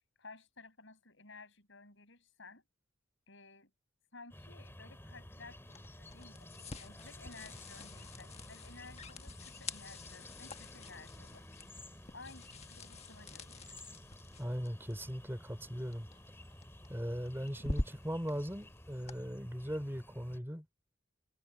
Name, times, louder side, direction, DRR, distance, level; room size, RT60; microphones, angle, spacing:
voice 1, 0.2-2.6 3.3-3.7 4.1-11.4 12.1-14.0 17.6-17.7, left 3 dB, 65° left, 7.7 m, -55 dB
sound 1, 4.3-20.4, left 1 dB, 10° left, 2.9 m, -53 dB
sound 2, 5.6-19.2, left 2 dB, 30° left, 1.5 m, -47 dB
voice 2, 14.4-16.1 16.9-20.7, equal, 10° right, 3.9 m, -39 dB
head